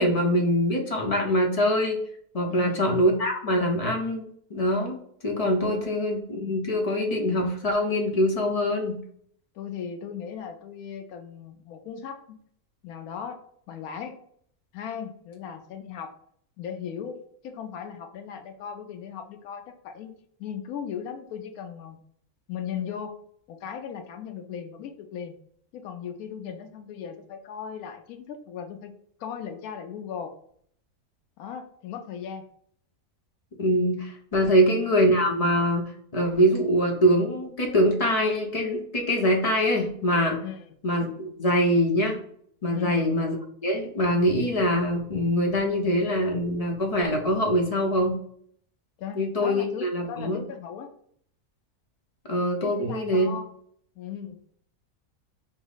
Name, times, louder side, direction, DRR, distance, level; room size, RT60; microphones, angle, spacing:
voice 1, 0.0-2.0 2.3-4.2 4.5-5.0 5.2-9.0 33.6-40.4 40.8-42.2 42.6-43.3 43.6-48.1 49.1-50.4 52.3-53.3, equal, 35° left, 1 dB, 0.7 m, -24 dB
voice 2, 2.5-2.8 5.8-5.9 9.5-12.4 12.8-13.4 13.7-14.2 14.7-16.1 16.6-22.0 22.5-23.2 23.5-25.3 25.7-28.9 29.2-30.3 31.4-32.4 40.4-40.6 42.7-43.0 49.0-50.9 52.6-53.5 54.0-54.5, left 8 dB, 80° left, 6 dB, 1.1 m, -37 dB
5.3 x 2.0 x 3.9 m, 0.64 s
omnidirectional pair, 1.6 m